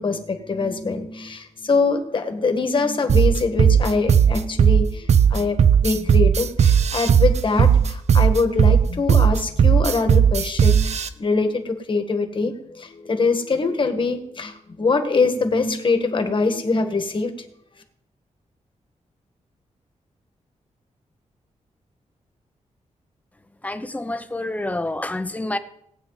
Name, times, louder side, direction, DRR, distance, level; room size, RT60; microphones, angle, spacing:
voice 1, 0.0-17.3, left 4 dB, 40° left, 6 dB, 1.7 m, -23 dB
sound 1, 3.1-11.1, right 8 dB, 65° right, 0.7 m, -16 dB
voice 2, 23.6-25.6, left 1 dB, 10° left, 9 dB, 0.8 m, -28 dB
19.0 x 8.8 x 4.1 m, 0.73 s
wide cardioid pair, 130°, 12 cm